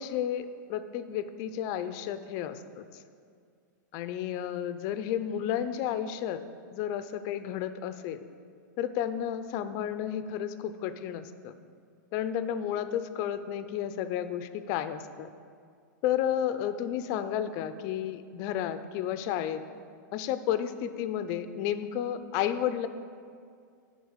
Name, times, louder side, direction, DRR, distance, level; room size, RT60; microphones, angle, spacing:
voice 1, 0.0-2.8 3.9-6.4 6.7-8.3 8.8-11.5 12.1-15.3 16.0-19.6 20.1-22.9, left 10 dB, 35° left, 11 dB, 0.4 m, -32 dB
10.5 x 3.8 x 6.4 m, 2.2 s
supercardioid pair, 155°, 10 cm